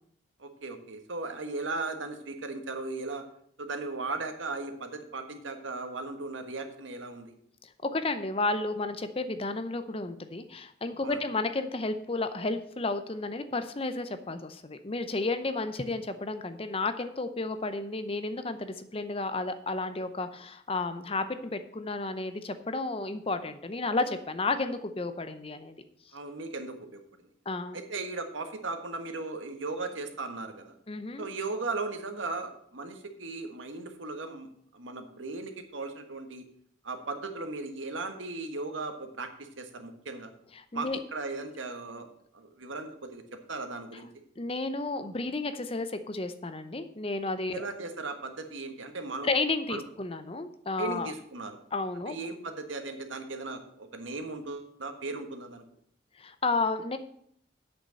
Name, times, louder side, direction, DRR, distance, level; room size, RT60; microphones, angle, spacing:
voice 1, 0.4-3.2 3.6-7.3 11.0-11.2 26.1-27.0 27.7-30.8 31.2-34.5 34.7-36.4 36.8-40.3 40.7-42.1 42.3-43.2 43.5-44.1 47.5-49.3 49.7-49.8 50.8-51.5 52.1-55.6, right 3 dB, 85° right, 6 dB, 1.5 m, -37 dB
voice 2, 7.6-25.8 27.5-27.8 30.9-31.3 40.5-41.0 44.4-47.6 49.2-51.1 51.7-52.1 56.2-57.0, left 3 dB, 30° left, 10 dB, 0.7 m, -32 dB
8.1 x 6.7 x 7.6 m, 0.68 s
head